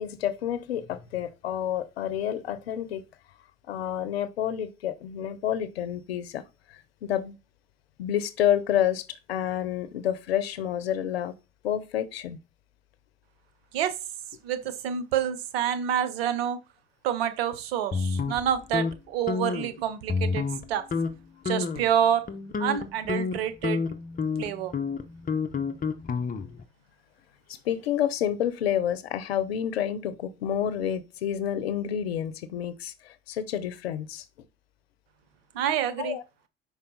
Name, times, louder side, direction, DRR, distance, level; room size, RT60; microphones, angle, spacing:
voice 1, 0.0-3.0 3.7-6.4 6.7-7.4 8.0-11.3 11.6-12.4 27.5-34.2 36.0-36.2, left 10 dB, 85° left, 0.7 m, -29 dB
voice 2, 14.4-16.6 17.0-20.8 21.5-22.2 22.6-23.8 24.4-24.7 35.5-36.2, right 9 dB, 80° right, 0.9 m, -27 dB
sound 1, 17.9-18.9 19.3-19.7 20.1-20.6 20.9-21.1 21.5-21.9 22.3-26.6, left 5 dB, 30° left, 0.9 m, -29 dB
5.5 x 4.6 x 3.9 m
hypercardioid pair, 65°, 30 cm